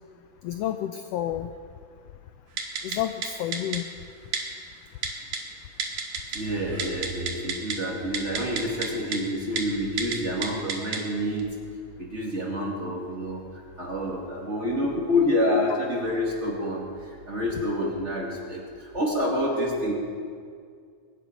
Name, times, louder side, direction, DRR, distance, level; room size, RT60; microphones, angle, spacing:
voice 1, 0.4-1.5 2.8-3.9, left 11 dB, 80° left, 9 dB, 1.4 m, -30 dB
Typing, 2.6-3.0 3.2-3.3 3.5-3.8 4.3-4.4 5.0-5.4 5.8-6.4 6.7-7.8 8.1-8.9 9.1-9.2 9.6-9.7 10.0-10.2 10.4-11.0 11.4-11.5, right 6 dB, 85° right, 3.1 m, -29 dB
voice 2, 6.3-11.5 12.0-19.9, left 1 dB, 25° right, -2 dB, 2.1 m, -28 dB
23.0 x 10.0 x 5.1 m, 2.2 s
omnidirectional pair, 3.4 m